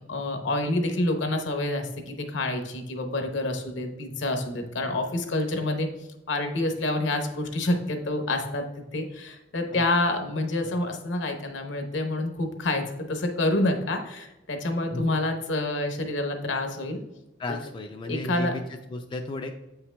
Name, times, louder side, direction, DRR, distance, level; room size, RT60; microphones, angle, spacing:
voice 1, 0.1-5.9 6.3-8.6 8.9-17.0 17.5-17.6 18.1-18.5, left 2 dB, 70° left, 5 dB, 0.9 m, -28 dB
voice 2, 17.4-19.6, left 2 dB, 25° left, 4 dB, 0.3 m, -35 dB
7.9 x 5.6 x 2.2 m, 0.96 s
head